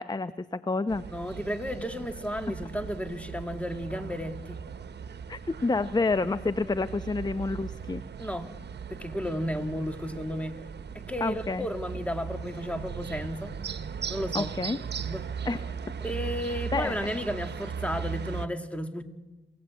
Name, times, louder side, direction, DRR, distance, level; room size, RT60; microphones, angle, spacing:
voice 1, 0.0-1.0 5.3-8.0 11.2-11.7 14.3-14.8 15.5-15.8 16.7-17.0, left 3 dB, 25° left, 13 dB, 0.8 m, -29 dB
sound 1, 0.9-18.5, right 6 dB, 70° right, 1.1 m, -38 dB
voice 2, 1.1-4.6 6.7-6.8 8.2-8.5 8.9-10.6 10.9-13.6 14.1-14.5 15.0-15.3 16.0-19.0, equal, 5° left, 7 dB, 2.3 m, -33 dB
27.0 x 17.0 x 8.5 m, 1.2 s
cardioid pair, 65°, 18 cm